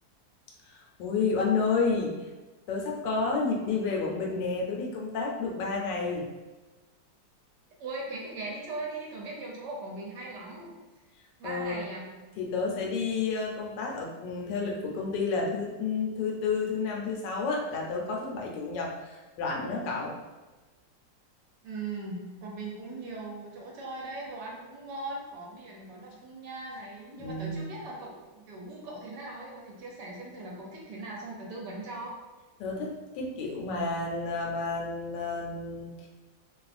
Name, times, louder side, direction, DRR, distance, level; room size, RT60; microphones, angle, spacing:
voice 1, 0.7-2.1 2.7-6.3 11.4-11.8 12.4-20.1 27.2-27.7 32.6-36.1, left 4 dB, 75° left, -1 dB, 1.2 m, -30 dB
voice 2, 7.8-10.8 11.4-12.2 21.6-32.2, right 2 dB, 75° right, -2 dB, 1.1 m, -39 dB
3.0 x 2.3 x 2.4 m, 1.2 s
omnidirectional pair, 2.0 m